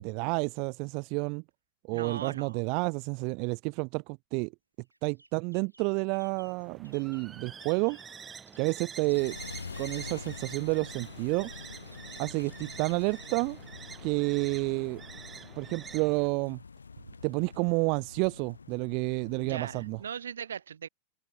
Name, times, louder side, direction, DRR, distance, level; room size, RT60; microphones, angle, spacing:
voice 1, 0.0-1.4 1.9-4.5 5.0-8.0 8.6-9.4 9.8-11.5 12.2-13.6 14.0-15.0 15.6-16.6 17.2-20.0, right 34 dB, 45° right, 0.3 m, -30 dB
voice 2, 1.9-2.6 17.0-17.1 19.4-20.9, right 8 dB, 65° right, 1.2 m, -39 dB
sound 1, 4.8-10.1 11.5-12.9, right 1 dB, 85° right, 4.5 m, -58 dB
sound 2, 6.2-16.3, right 6 dB, 20° right, 4.8 m, -47 dB
sound 3, 9.1-20.1, left 5 dB, 75° left, 1.5 m, -46 dB
open air
figure-of-eight pair, 90°, 0 cm